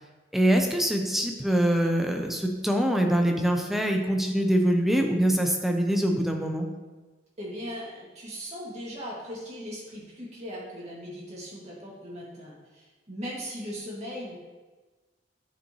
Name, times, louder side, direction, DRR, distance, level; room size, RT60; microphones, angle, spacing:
voice 1, 0.3-6.7, right 1 dB, ahead, 2 dB, 0.7 m, -24 dB
voice 2, 7.4-14.4, equal, 40° right, -5 dB, 2.2 m, -38 dB
9.5 x 5.5 x 3.1 m, 1.3 s
head